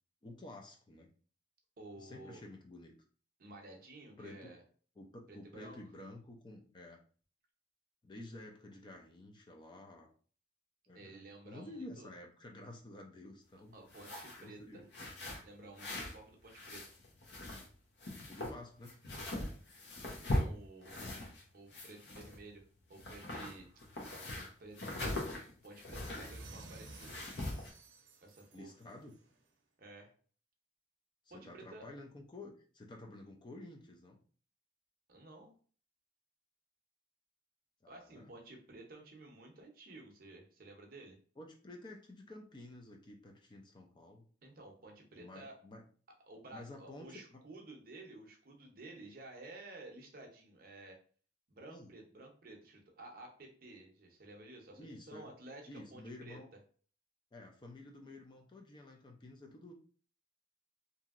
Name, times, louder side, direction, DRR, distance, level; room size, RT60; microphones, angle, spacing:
voice 1, 0.2-1.1 2.0-2.9 4.2-4.5 5.0-7.0 8.0-10.1 10.9-13.8 14.4-14.9 18.3-19.0 28.5-29.2 31.3-34.2 37.8-38.3 41.4-44.2 45.2-45.8 46.5-47.4 51.7-51.9 54.7-55.3 55.7-56.5 57.3-59.7, left 2 dB, 25° left, 1 dB, 0.4 m, -51 dB
voice 2, 1.8-2.4 3.4-4.6 5.3-5.8 10.9-12.1 13.7-14.8 15.4-16.9 20.2-21.0 21.5-22.6 22.9-23.7 24.6-27.2 28.2-28.7 29.8-30.1 31.3-31.9 35.1-35.5 37.9-41.2 44.4-45.5 46.3-51.0 51.5-56.4, right 2 dB, 50° right, 2 dB, 0.6 m, -53 dB
sound 1, 13.8-14.5 14.9-16.2 16.5-17.7 18.0-21.4 21.7-22.6 22.9-26.4 26.9-27.7, left 1 dB, 65° left, 0.8 m, -41 dB
sound 2, 26.0-29.3, right 2 dB, 90° right, 0.6 m, -54 dB
2.9 x 2.6 x 2.4 m, 0.42 s
head